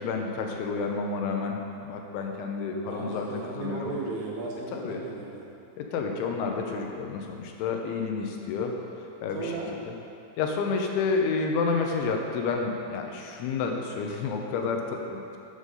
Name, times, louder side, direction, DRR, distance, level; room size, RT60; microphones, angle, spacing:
voice 1, 0.0-3.9 4.7-5.0 5.8-8.8 9.2-9.5 9.8-9.9 10.4-15.4, left 4 dB, 85° left, 2 dB, 3.2 m, -30 dB
voice 2, 2.8-5.5 9.3-9.7, right 3 dB, 85° right, -4 dB, 4.2 m, -35 dB
12.5 x 8.3 x 4.0 m, 2.7 s
omnidirectional pair, 5.5 m